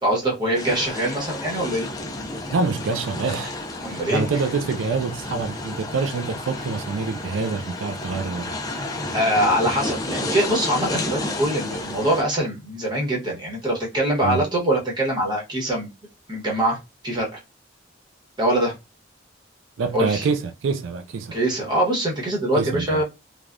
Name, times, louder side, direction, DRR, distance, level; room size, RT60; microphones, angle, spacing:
voice 1, 0.0-1.9 3.8-4.2 9.1-15.9 16.3-16.8 17.0-17.4 18.4-18.7 19.9-20.3 21.3-23.0, right 1 dB, 25° right, 1.0 m, -23 dB
sound 1, 0.5-12.2, left 2 dB, 20° left, 0.4 m, -31 dB
voice 2, 2.5-8.6 14.2-14.5 19.8-21.4 22.6-23.0, right 4 dB, 85° right, 0.4 m, -26 dB
3.3 x 2.2 x 2.5 m
head